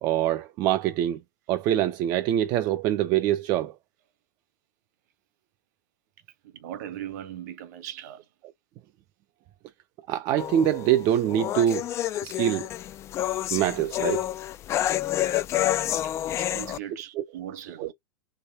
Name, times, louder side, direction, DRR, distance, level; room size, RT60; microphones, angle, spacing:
voice 1, 0.0-1.2 1.5-3.7 10.1-11.9 12.2-12.7 13.5-14.3 17.2-17.3 17.8-17.9, right 11 dB, 40° right, 0.5 m, -24 dB
voice 2, 6.4-8.2 16.0-17.9, right 11 dB, 60° right, 1.2 m, -39 dB
sound 1, 10.4-16.8, left 13 dB, 25° left, 0.3 m, -28 dB
3.5 x 3.0 x 4.1 m
hypercardioid pair, 115°, 10 cm